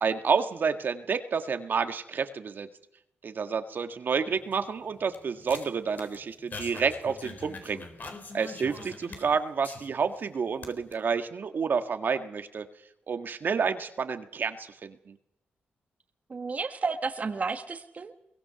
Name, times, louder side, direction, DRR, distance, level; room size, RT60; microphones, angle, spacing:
voice 1, 0.0-2.7 3.2-7.8 8.3-12.6 13.1-15.1, right 5 dB, 60° right, 8 dB, 1.6 m, -29 dB
sound 1, 4.3-10.2 10.5-10.9, left 3 dB, 50° left, 4.0 m, -44 dB
voice 2, 16.3-18.1, right 4 dB, 40° right, 7 dB, 1.6 m, -32 dB
23.0 x 17.5 x 6.9 m, 0.79 s
cardioid pair, 80°, 4 cm